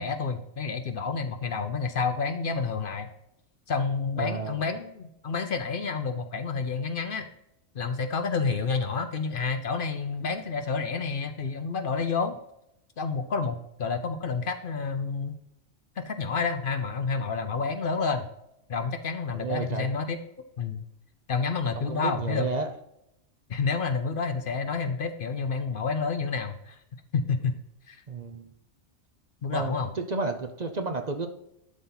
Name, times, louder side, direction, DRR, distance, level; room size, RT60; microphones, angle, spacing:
voice 1, 0.0-3.1 3.7-7.3 7.7-12.4 13.0-15.4 16.0-18.3 18.7-20.2 20.6-20.8 21.3-22.5 23.5-26.8 27.1-27.6 27.9-28.0 29.4-29.9, left 5 dB, 55° left, 8 dB, 0.8 m, -29 dB
voice 2, 4.2-4.6 19.3-19.9 21.8-22.7 28.1-28.5 29.5-31.3, right 3 dB, 45° right, 6 dB, 0.8 m, -32 dB
12.0 x 4.1 x 3.9 m, 0.81 s
omnidirectional pair, 1.2 m